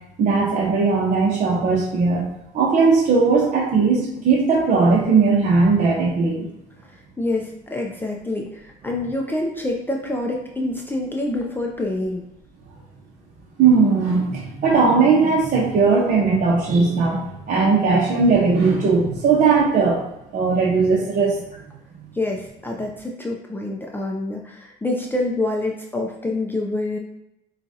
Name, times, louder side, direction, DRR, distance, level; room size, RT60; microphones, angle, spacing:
voice 1, 0.2-2.2 2.5-6.5 13.6-20.0 20.3-21.4, right 4 dB, 50° right, -5 dB, 1.0 m, -18 dB
voice 2, 6.9-12.2 22.1-27.0, left 2 dB, 10° left, 0 dB, 0.5 m, -26 dB
6.9 x 2.4 x 2.8 m, 0.83 s
cardioid pair, 110°, 17 cm